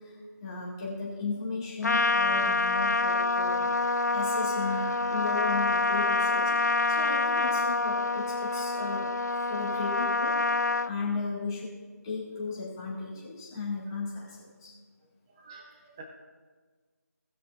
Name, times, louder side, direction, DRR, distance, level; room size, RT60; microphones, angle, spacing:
voice 1, 0.0-3.7 4.1-9.1 9.5-10.4 10.8-11.7 12.0-14.7, left 4 dB, 15° left, -7 dB, 2.1 m, -35 dB
Trumpet, 1.8-10.9, left 3 dB, 75° left, 0.4 m, -27 dB
voice 2, 15.3-16.0, right 4 dB, 15° right, 0 dB, 0.7 m, -49 dB
19.0 x 6.5 x 2.6 m, 1.5 s
figure-of-eight pair, 160°, 9 cm